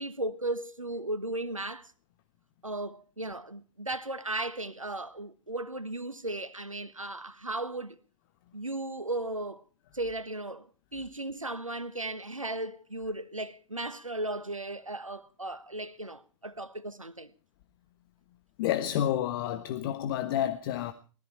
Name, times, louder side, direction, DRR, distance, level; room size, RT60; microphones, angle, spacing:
voice 1, 0.0-1.9 2.6-7.9 8.5-9.6 9.9-17.3, right 2 dB, 85° right, 1.3 m, -36 dB
voice 2, 18.6-20.9, left 11 dB, 45° left, 1.3 m, -29 dB
20.0 x 14.5 x 4.5 m
figure-of-eight pair, 105°, 16 cm